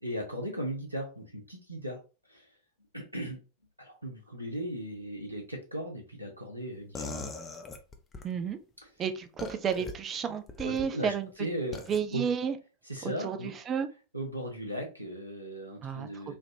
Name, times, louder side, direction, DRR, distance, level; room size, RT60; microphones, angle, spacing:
voice 1, 0.0-2.0 2.3-2.5 2.9-3.4 3.8-7.2 10.6-11.1 11.4-11.8 12.1-12.2 12.9-13.5 14.1-16.3, right 1 dB, 85° right, 1 dB, 0.8 m, -37 dB
sound 1, 6.9-8.3 9.4-9.9 10.5-10.9 11.7-12.0, left 3 dB, 20° left, 0.6 m, -40 dB
voice 2, 8.2-8.6 9.0-11.3 11.9-12.6 13.0-13.9 15.8-16.3, right 7 dB, 25° right, 8 dB, 0.4 m, -32 dB
3.3 x 2.5 x 2.6 m, 0.33 s
figure-of-eight pair, 90°, 0 cm